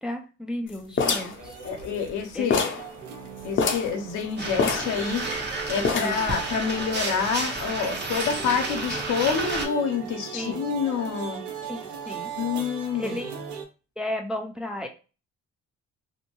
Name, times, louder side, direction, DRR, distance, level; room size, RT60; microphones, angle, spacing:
voice 1, 0.0-1.6 2.3-2.6 5.9-6.2 10.3-10.7 11.7-12.3 12.9-13.3 14.0-14.9, left 1 dB, 5° right, 3 dB, 0.4 m, -33 dB
sound 1, 1.0-2.2 2.5-2.9 3.2-3.3 3.5-4.0 4.6-5.4 5.8-6.3, left 5 dB, 40° left, 0.6 m, -26 dB
sound 2, 1.3-13.6, right 7 dB, 75° right, 0.7 m, -38 dB
voice 2, 1.6-2.7 3.4-5.3 5.7-11.4 12.4-13.1, left 6 dB, 80° left, 5 dB, 0.7 m, -27 dB
sound 3, 4.4-9.7, right 2 dB, 35° right, 0.8 m, -31 dB
2.6 x 2.2 x 2.9 m, 0.33 s
cardioid pair, 90°, 30 cm